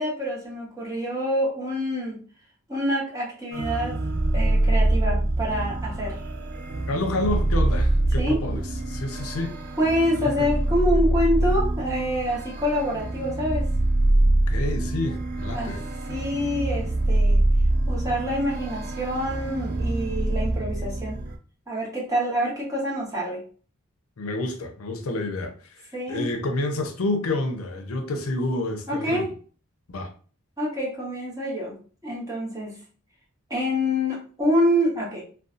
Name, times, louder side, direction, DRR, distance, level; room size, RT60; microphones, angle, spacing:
voice 1, 0.0-2.2 2.7-4.0 4.3-6.2 8.2-8.4 9.8-13.6 15.5-15.7 16.1-17.4 17.9-21.2 21.7-23.4 25.9-26.2 28.9-29.3 30.6-31.7 32.0-32.7 33.5-35.2, equal, 15° right, 0.9 m, -26 dB
sound 1, 3.5-21.4, right 1 dB, 50° right, 0.3 m, -24 dB
voice 2, 6.9-9.6 10.1-10.3 14.5-15.8 24.2-29.3 29.9-30.1, left 2 dB, 85° left, 0.5 m, -29 dB
2.6 x 2.2 x 2.4 m
head